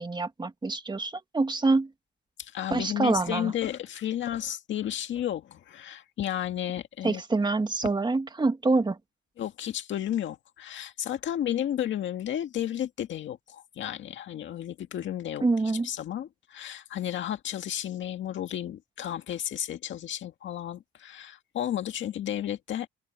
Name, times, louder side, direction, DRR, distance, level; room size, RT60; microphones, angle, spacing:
voice 1, 0.0-1.9 2.7-3.5 7.0-9.0 15.4-15.9, right 3 dB, 20° right, 1.9 m, -26 dB
voice 2, 2.4-7.2 9.4-22.9, left 11 dB, 70° left, 1.9 m, -33 dB
open air
cardioid pair, 90°, 20 cm